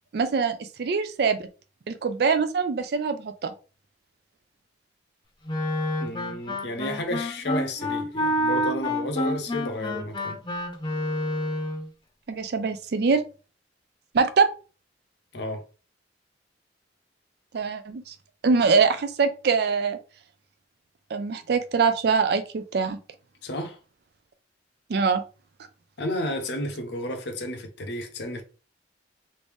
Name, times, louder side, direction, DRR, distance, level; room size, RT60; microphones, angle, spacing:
voice 1, 0.1-1.4 1.9-3.5 12.3-13.2 14.1-14.5 17.5-18.1 18.4-20.0 21.1-23.0 24.9-25.2, right 5 dB, 60° right, 0.4 m, -23 dB
Wind instrument woodwind instrument, 5.5-11.9, left 1 dB, 25° left, 0.7 m, -28 dB
voice 2, 6.0-10.4 15.3-15.6 23.4-23.8 26.0-28.4, left 1 dB, 65° left, 0.7 m, -32 dB
3.1 x 2.6 x 3.5 m
head